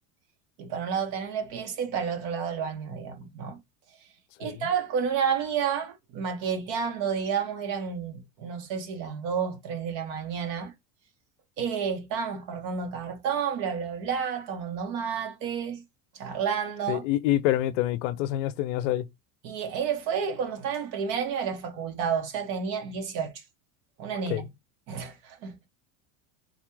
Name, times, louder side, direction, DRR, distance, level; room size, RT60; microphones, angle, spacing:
voice 1, 0.6-3.6 4.4-10.7 11.6-15.8 16.1-17.0 19.4-23.4 24.0-24.5 24.9-25.7, right 7 dB, 60° right, 1.2 m, -30 dB
voice 2, 16.9-19.1 24.3-24.4, left 13 dB, 65° left, 0.5 m, -26 dB
4.0 x 2.3 x 3.0 m
cardioid pair, 175°, 41 cm